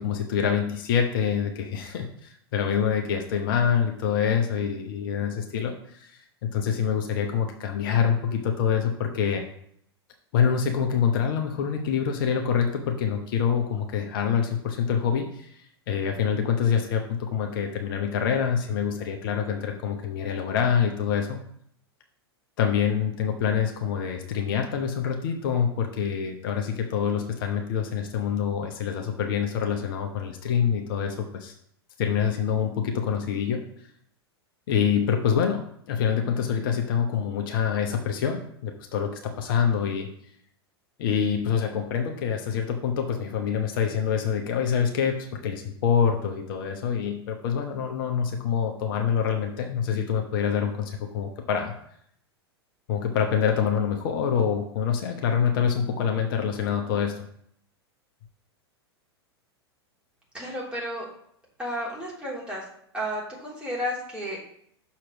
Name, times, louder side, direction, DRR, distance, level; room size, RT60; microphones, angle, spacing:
voice 1, 0.0-9.4 10.3-21.4 22.6-31.5 32.0-33.6 34.7-40.1 41.0-51.7 52.9-57.2, left 7 dB, 55° left, 4 dB, 1.0 m, -26 dB
voice 2, 60.3-61.1 61.6-62.6 62.9-64.4, equal, 5° right, -5 dB, 3.1 m, -32 dB
6.3 x 4.4 x 6.0 m, 0.68 s
figure-of-eight pair, 95°, 14 cm